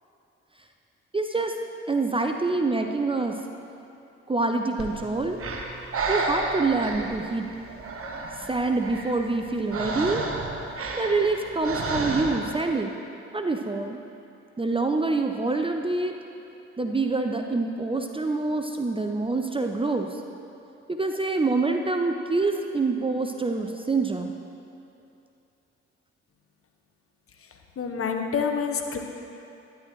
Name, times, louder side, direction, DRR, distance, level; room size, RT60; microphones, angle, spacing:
voice 1, 1.1-1.5 1.9-3.3 4.3-5.4 6.1-7.5 8.4-10.3 10.9-12.9 13.3-14.0 14.6-16.2 16.8-20.2 20.9-24.4, right 3 dB, 15° right, 4 dB, 0.6 m, -26 dB
Breathing, 4.8-12.7, right 3 dB, 40° right, 1.3 m, -32 dB
voice 2, 27.8-29.0, left 6 dB, 40° left, 3 dB, 1.2 m, -27 dB
12.5 x 10.5 x 3.2 m, 2.8 s
hypercardioid pair, 45°, 34 cm